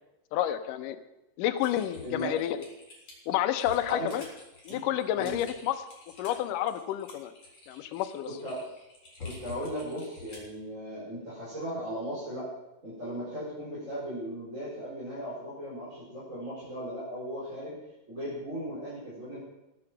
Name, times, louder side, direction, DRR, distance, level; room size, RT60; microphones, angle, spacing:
voice 1, 0.3-1.0 1.4-2.6 3.3-4.3 4.7-5.8 6.2-7.3 7.7-8.3, left 12 dB, 80° left, 9 dB, 2.3 m, -29 dB
Typing, 1.6-10.5, left 4 dB, 40° left, 5.5 m, -48 dB
voice 2, 2.0-2.3 3.8-4.1 4.7-4.8 5.1-5.4 8.2-8.6 9.2-12.5 12.8-17.8 18.1-19.4, equal, 20° right, -8 dB, 4.6 m, -37 dB
17.5 x 8.8 x 6.0 m, 0.95 s
omnidirectional pair, 3.9 m